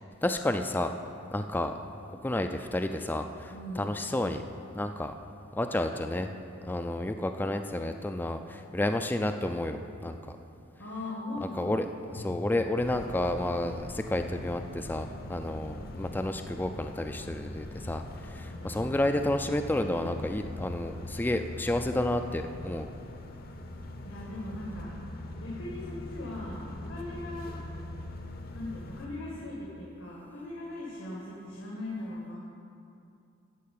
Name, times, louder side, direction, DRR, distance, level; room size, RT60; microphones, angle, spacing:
voice 1, 0.2-1.0 1.3-1.7 2.2-4.4 4.8-5.1 5.5-6.3 6.6-10.4 11.5-11.8 12.1-22.9, left 1 dB, 10° left, 6 dB, 0.3 m, -31 dB
voice 2, 3.5-3.9 10.8-11.8 12.2-12.3 18.5-19.5 24.0-24.9 25.4-27.6 28.5-32.4, left 1 dB, 90° left, -6 dB, 2.0 m, -40 dB
sound 1, 12.8-29.1, left 1 dB, 50° left, 0.7 m, -42 dB
12.5 x 4.7 x 8.5 m, 2.6 s
head